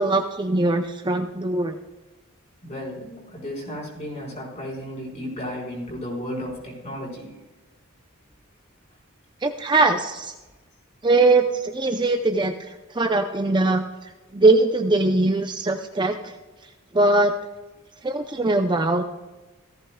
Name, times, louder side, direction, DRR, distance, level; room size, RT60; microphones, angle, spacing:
voice 1, 0.0-1.8 9.4-10.3 11.0-13.8 14.3-16.3 16.9-17.3 18.0-19.0, right 2 dB, 20° right, 5 dB, 0.6 m, -21 dB
voice 2, 2.6-7.3, equal, 35° left, -3 dB, 4.7 m, -34 dB
17.5 x 14.5 x 2.3 m, 1.1 s
head